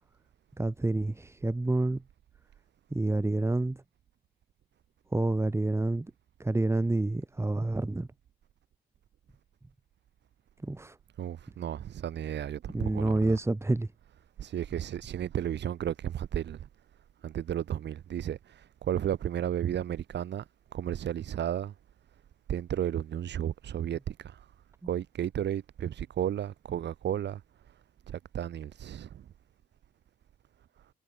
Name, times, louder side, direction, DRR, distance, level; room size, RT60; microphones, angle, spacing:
voice 1, 0.6-2.0 2.9-3.8 5.1-6.1 6.4-8.1 10.6-11.0 12.7-13.9, right 2 dB, 15° right, 2.3 m, -28 dB
voice 2, 11.2-13.4 14.4-16.7 17.2-20.4 20.7-21.7 22.5-24.4 24.9-27.4 28.1-29.2, right 10 dB, 60° right, 1.7 m, -33 dB
cardioid pair, 90°, 20 cm